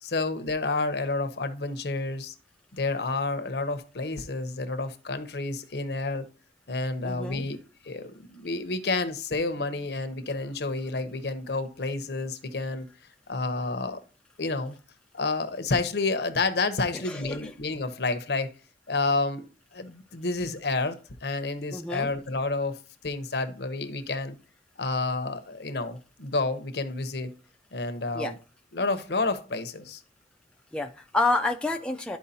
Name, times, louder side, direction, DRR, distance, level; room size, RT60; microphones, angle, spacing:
voice 1, 0.0-2.3 2.7-6.3 6.7-7.6 7.8-12.9 13.3-14.0 14.4-14.8 15.1-18.5 18.9-24.4 24.8-27.3 27.7-28.4 28.7-30.0, left 3 dB, 65° left, 0.8 m, -30 dB
voice 2, 7.0-7.4 17.1-17.5 21.7-22.1 28.1-28.3 30.7-32.2, left 2 dB, 5° left, 0.4 m, -28 dB
11.5 x 4.6 x 2.8 m
head